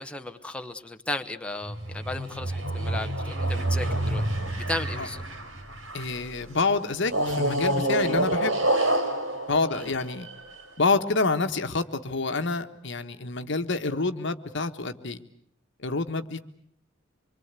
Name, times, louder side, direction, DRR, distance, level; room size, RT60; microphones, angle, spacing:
voice 1, 0.0-4.2 4.7-5.2 9.7-9.9, left 2 dB, 5° left, 5 dB, 1.1 m, -35 dB
sound 1, 1.6-6.3 7.1-10.7, right 1 dB, 75° right, 4.7 m, -28 dB
voice 2, 5.9-8.6 9.5-10.3 10.8-15.2 15.8-16.4, left 3 dB, 65° left, 8 dB, 1.4 m, -27 dB
25.5 x 24.0 x 8.3 m, 0.68 s
head